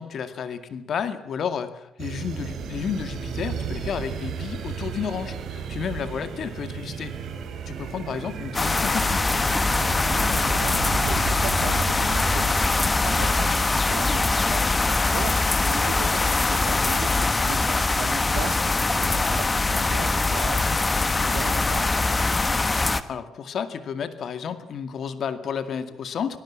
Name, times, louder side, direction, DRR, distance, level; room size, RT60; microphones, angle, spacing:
voice 1, 0.0-7.2 7.7-9.2 23.0-26.4, left 7 dB, 60° left, 11 dB, 2.1 m, -31 dB
sound 1, 2.0-14.3, right 7 dB, 70° right, 4.5 m, -34 dB
sound 2, 8.5-23.0, left 3 dB, 25° left, 1.2 m, -22 dB
voice 2, 10.3-22.2, right 10 dB, 90° right, 10 dB, 1.8 m, -38 dB
25.0 x 18.0 x 7.4 m, 0.81 s
cardioid pair, 90°, 0 cm